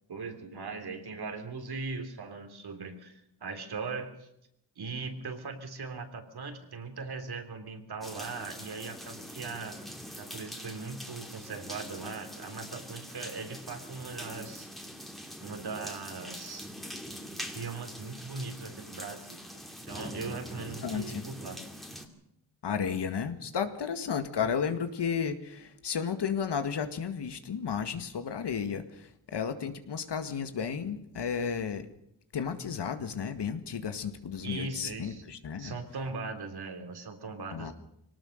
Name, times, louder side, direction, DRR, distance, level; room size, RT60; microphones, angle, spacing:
voice 1, 0.1-4.3 4.7-9.8 10.2-14.7 15.4-16.7 17.5-19.4 19.9-21.6 34.4-35.2 35.6-37.7, right 4 dB, 60° right, 6 dB, 3.4 m, -39 dB
sound 1, 8.0-22.1, equal, ahead, 2.7 m, -43 dB
voice 2, 20.8-21.2 22.6-31.9 32.3-35.8 37.5-37.7, left 7 dB, 65° left, 9 dB, 2.0 m, -33 dB
22.5 x 18.5 x 6.7 m, 0.78 s
cardioid pair, 95°, 44 cm